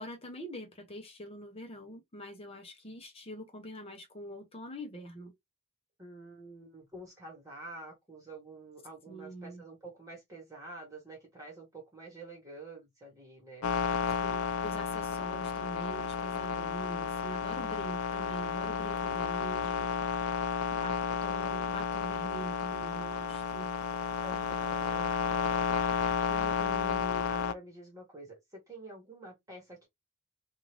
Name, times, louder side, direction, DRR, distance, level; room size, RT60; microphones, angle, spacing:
voice 1, 0.0-5.3 9.1-9.6 14.2-19.9 20.7-23.7, right 1 dB, 25° left, 0.8 m, -44 dB
voice 2, 6.0-13.7 24.2-25.8 26.3-29.9, right 1 dB, 15° right, 1.2 m, -48 dB
sound 1, 13.6-27.5, left 6 dB, 75° left, 0.4 m, -32 dB
2.7 x 2.4 x 3.1 m
head